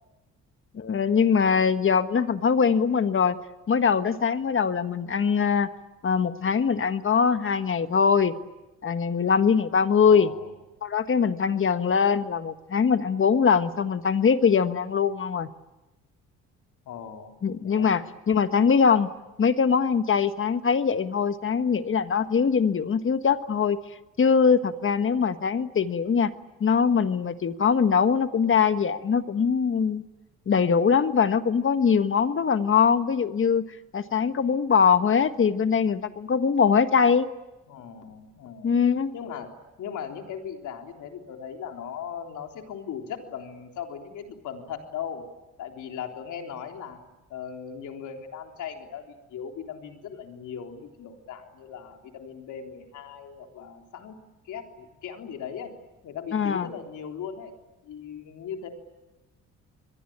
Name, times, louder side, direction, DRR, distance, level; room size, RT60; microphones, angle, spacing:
voice 1, 0.7-3.4 3.7-5.7 6.0-8.3 8.8-10.3 10.8-15.5 17.4-19.1 19.4-23.8 24.2-26.3 26.6-30.0 30.5-33.6 33.9-37.3 38.6-39.1 56.3-56.7, left 6 dB, 40° left, 10 dB, 1.5 m, -22 dB
voice 2, 10.1-10.6 16.9-17.4 17.6-17.9 37.7-38.7 39.1-45.3 45.6-47.0 47.3-54.2 54.5-55.7 56.0-57.5 57.8-58.7, left 7 dB, 75° left, 3 dB, 3.8 m, -38 dB
29.5 x 22.5 x 8.8 m, 1.0 s
cardioid pair, 90°, 30 cm